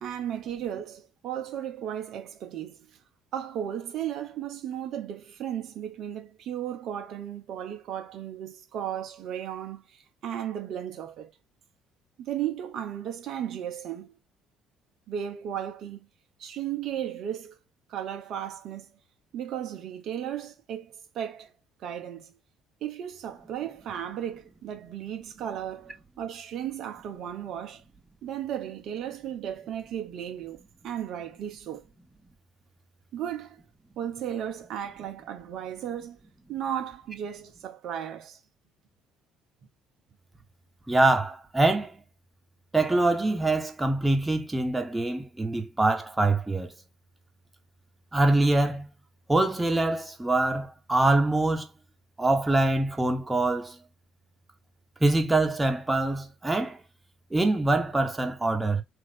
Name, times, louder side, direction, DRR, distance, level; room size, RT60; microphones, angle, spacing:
voice 1, 0.0-2.8 3.3-11.3 12.2-14.1 15.1-16.1 16.4-17.6 17.9-18.9 19.3-21.5 21.8-22.3 22.8-27.8 28.2-31.8 33.1-33.6 34.0-36.2 36.5-38.4, right 10 dB, 60° right, 0.5 m, -35 dB
voice 2, 40.9-42.0 42.7-46.7 48.1-48.9 49.3-51.7 52.2-53.8 55.0-56.8 57.3-58.8, right 2 dB, 15° right, 0.9 m, -24 dB
3.1 x 2.4 x 3.5 m
hypercardioid pair, 55°, 0 cm